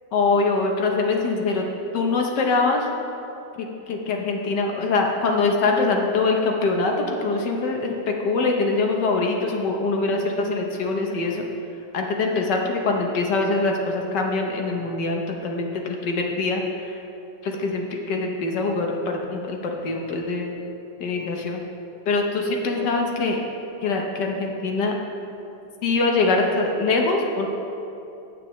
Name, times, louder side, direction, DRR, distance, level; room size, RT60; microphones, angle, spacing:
voice 1, 0.1-1.7 1.9-2.9 3.6-11.4 11.9-17.0 17.4-20.6 21.0-21.6 22.1-23.4 23.8-24.9 25.8-27.5, left 3 dB, 65° left, 1 dB, 1.5 m, -23 dB
15.0 x 7.8 x 3.1 m, 2.8 s
omnidirectional pair, 2.1 m